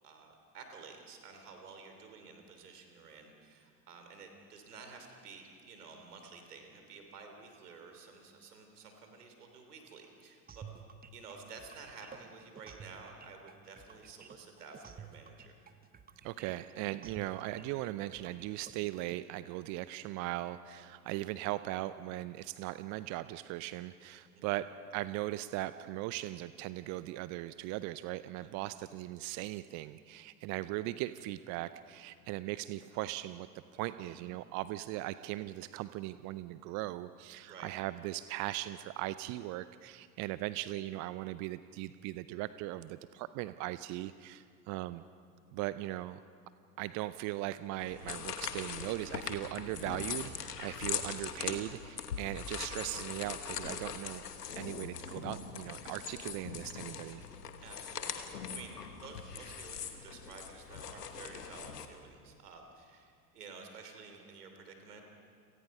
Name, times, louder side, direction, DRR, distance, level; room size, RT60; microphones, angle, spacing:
voice 1, 0.0-10.6 11.1-15.5 24.3-24.6 28.3-28.5 34.0-34.2 37.5-37.7 48.0-48.2 57.6-58.7 59.0-65.0, right 4 dB, 70° right, 4 dB, 3.3 m, -52 dB
sound 1, 10.5-19.2, right 7 dB, 20° right, 1.0 m, -52 dB
voice 2, 16.2-33.5 33.7-45.0 45.5-46.2 46.8-54.2 54.5-57.2, right 16 dB, 40° right, 14 dB, 0.6 m, -39 dB
sound 2, 47.8-61.8, left 7 dB, 80° left, 1.5 m, -41 dB
29.5 x 18.5 x 5.5 m, 2.3 s
figure-of-eight pair, 75°, 47 cm